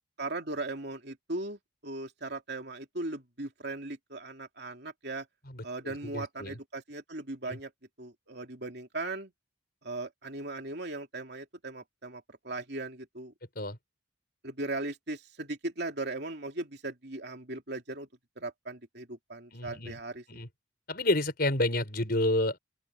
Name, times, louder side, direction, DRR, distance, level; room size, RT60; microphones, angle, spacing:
voice 1, 0.2-5.3 5.6-7.7 8.0-9.3 9.8-13.3 14.4-18.1 18.4-20.2, right 2 dB, 55° right, 3.1 m, -38 dB
voice 2, 5.5-6.6 7.5-7.6 13.6-13.8 19.5-20.0 20.3-20.5 20.9-22.6, left 1 dB, 50° left, 5.4 m, -30 dB
open air
head